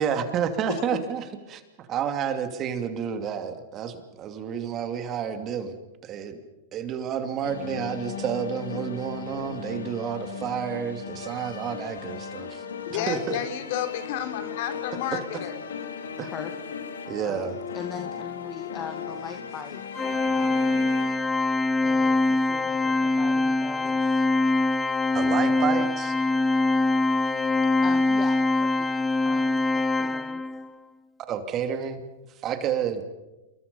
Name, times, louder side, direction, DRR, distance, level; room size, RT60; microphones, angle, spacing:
voice 1, 0.0-1.6 1.9-5.7 6.0-6.4 6.7-13.4 15.1-15.2 16.2-16.3 17.1-17.5 25.1-26.2 31.3-32.0 32.4-33.0, right 8 dB, 30° right, 8 dB, 2.6 m, -30 dB
sound 1, 7.4-21.6, left 7 dB, 85° left, 2.4 m, -37 dB
voice 2, 12.8-15.6, left 10 dB, 60° left, 8 dB, 3.7 m, -31 dB
voice 3, 17.2-19.8 20.3-20.9 21.8-24.2 27.8-30.4, left 6 dB, 25° left, 6 dB, 2.0 m, -41 dB
Organ, 20.0-30.7, left 2 dB, 10° left, 0.7 m, -23 dB
28.0 x 22.5 x 5.5 m, 1.0 s
hypercardioid pair, 125°, 0 cm